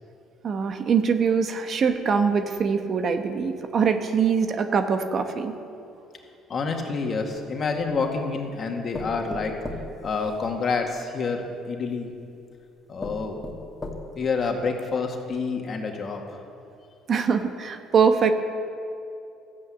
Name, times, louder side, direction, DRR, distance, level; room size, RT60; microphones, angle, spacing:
voice 1, 0.4-5.5 17.1-18.3, right 6 dB, 50° right, 7 dB, 1.0 m, -23 dB
voice 2, 6.5-9.5 10.0-12.1 12.9-13.4 14.2-16.2, left 4 dB, 45° left, 2 dB, 2.0 m, -28 dB
sound 1, 7.4-8.2 8.9-10.9 11.9-12.0 12.6-12.7 13.0-14.4 14.8-14.9 15.3-15.4, left 2 dB, 20° left, 2.1 m, -38 dB
13.5 x 8.5 x 8.2 m, 2.6 s
supercardioid pair, 80°, 0 cm